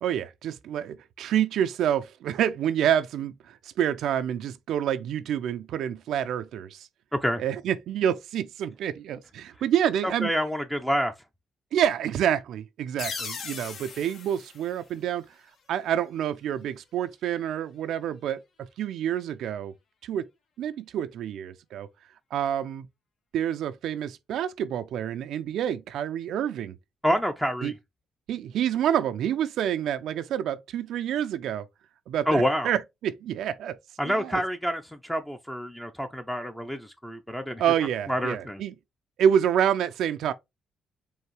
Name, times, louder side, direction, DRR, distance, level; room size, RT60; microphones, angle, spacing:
voice 1, 0.0-6.9 7.4-10.3 11.7-15.3 15.7-18.4 18.8-19.7 20.0-20.2 20.6-21.9 22.3-22.9 23.3-26.8 27.6-27.7 28.3-31.7 32.1-33.8 34.1-34.4 37.6-38.7 39.2-40.3, right 9 dB, 75° right, 0.4 m, -27 dB
voice 2, 10.2-11.1 27.0-27.7 32.3-32.7 34.0-37.6 38.1-38.6, equal, 5° left, 0.5 m, -27 dB
sound 1, 13.0-15.6, left 5 dB, 65° left, 1.1 m, -39 dB
4.7 x 2.7 x 3.1 m
cardioid pair, 90°, 0 cm